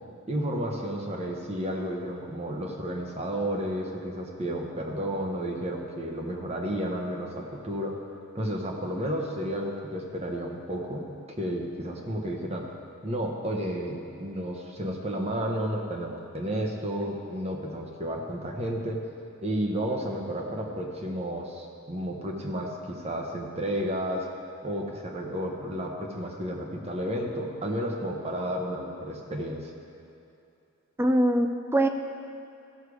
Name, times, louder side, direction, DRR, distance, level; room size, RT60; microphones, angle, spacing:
voice 1, 0.3-7.9 8.3-11.0 11.4-12.7 13.0-19.0 19.4-24.3 24.6-29.7, equal, 30° right, 1 dB, 1.1 m, -32 dB
voice 2, 31.0-31.9, right 1 dB, 10° right, 6 dB, 0.4 m, -23 dB
14.5 x 6.5 x 4.9 m, 2.6 s
head